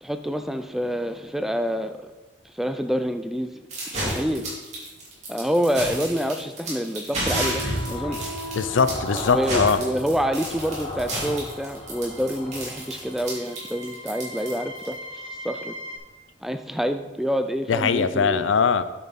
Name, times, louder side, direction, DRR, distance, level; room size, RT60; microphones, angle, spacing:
voice 1, 0.0-2.1 2.4-3.7 4.0-4.5 5.3-8.3 9.3-15.0 15.4-15.7 16.4-18.5, equal, ahead, 8 dB, 0.3 m, -27 dB
sound 1, 3.7-14.9, right 1 dB, 35° right, 2.8 m, -31 dB
sound 2, 7.2-13.2, left 1 dB, 35° left, 1.6 m, -34 dB
voice 2, 8.6-9.8 17.7-18.8, left 5 dB, 80° left, 13 dB, 0.5 m, -21 dB
sound 3, 11.3-16.0, equal, 90° right, 1.4 m, -41 dB
8.5 x 7.0 x 4.1 m, 1.2 s
head